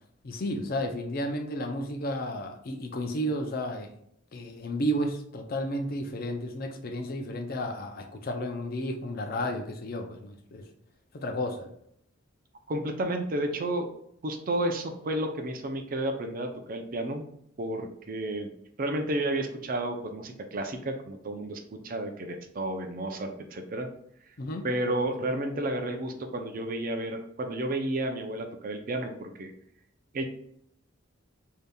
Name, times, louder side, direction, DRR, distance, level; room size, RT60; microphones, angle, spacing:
voice 1, 0.2-3.9 4.3-10.6 11.1-11.7 24.4-24.7, equal, 50° left, 5 dB, 0.5 m, -32 dB
voice 2, 12.7-13.9 14.2-17.3 17.6-18.5 18.8-23.9 24.6-29.5 30.1-30.2, right 1 dB, 45° right, 5 dB, 0.5 m, -31 dB
4.9 x 2.8 x 2.2 m, 0.72 s
head